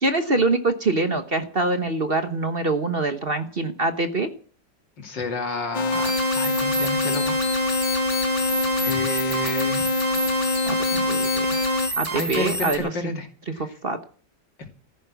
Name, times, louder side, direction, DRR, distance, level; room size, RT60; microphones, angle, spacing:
voice 1, 0.0-4.3 10.7-11.6 12.0-13.2 13.6-14.0, right 3 dB, 35° right, 9 dB, 1.2 m, -24 dB
voice 2, 5.0-7.4 8.0-8.2 8.8-9.9 11.8-13.3 13.5-13.7 14.6-14.7, left 4 dB, 80° left, 5 dB, 3.3 m, -31 dB
sound 1, 5.7-11.9, left 3 dB, 55° left, 0.4 m, -24 dB
sound 2, 5.9-12.8, right 3 dB, 55° right, 4.2 m, -29 dB
14.5 x 10.5 x 8.2 m, 0.43 s
omnidirectional pair, 1.9 m